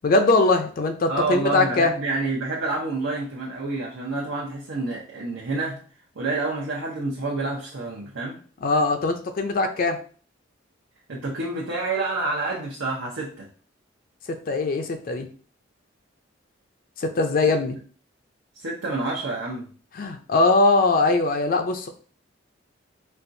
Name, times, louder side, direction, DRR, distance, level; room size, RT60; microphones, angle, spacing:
voice 1, 0.0-1.9 8.6-10.0 14.3-15.3 17.0-17.8 20.0-21.9, left 3 dB, 50° left, 6 dB, 0.4 m, -21 dB
voice 2, 1.1-5.8 6.2-8.4 11.1-13.5 18.5-19.7, right 3 dB, 90° right, -4 dB, 0.8 m, -28 dB
4.3 x 2.3 x 2.6 m, 0.41 s
head